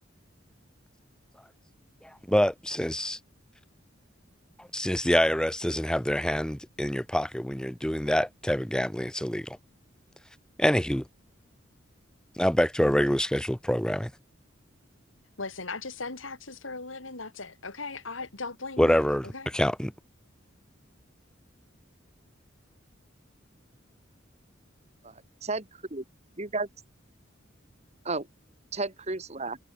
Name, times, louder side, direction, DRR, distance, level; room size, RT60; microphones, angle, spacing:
voice 1, 2.0-3.2 4.6-9.6 10.6-11.0 12.4-14.1 18.8-19.9, equal, 5° left, 0.9 m, -26 dB
voice 2, 15.4-19.0 19.3-19.5, left 3 dB, 90° left, 4.1 m, -38 dB
voice 3, 25.4-26.0 26.4-26.7 28.1-28.3 28.7-29.6, right 3 dB, 35° right, 1.8 m, -32 dB
head